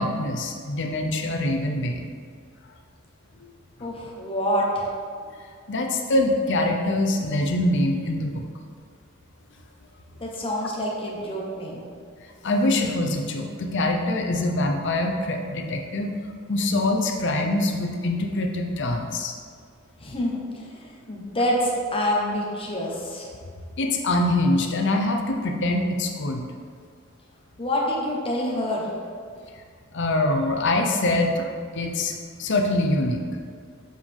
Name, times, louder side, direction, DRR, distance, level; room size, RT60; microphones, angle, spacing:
voice 1, 0.0-2.1 3.8-3.9 5.7-8.4 12.4-16.1 16.5-19.3 23.8-26.4 29.9-32.1 32.4-33.2, left 1 dB, 60° left, 3 dB, 0.7 m, -24 dB
voice 2, 3.8-4.9 10.2-11.9 20.0-23.4 27.6-28.9, equal, 25° left, -2 dB, 1.1 m, -27 dB
7.6 x 4.8 x 3.6 m, 2.1 s
head